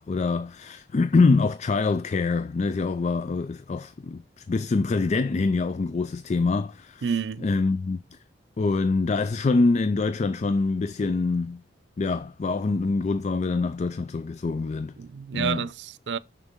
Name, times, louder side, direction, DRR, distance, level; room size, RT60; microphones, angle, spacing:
voice 1, 0.0-7.1 7.4-8.0 8.6-11.6 12.0-14.9 15.3-15.7, left 3 dB, 40° left, 0.4 m, -25 dB
voice 2, 7.0-7.5 15.0-16.2, right 7 dB, 65° right, 0.5 m, -29 dB
6.7 x 6.3 x 3.6 m
head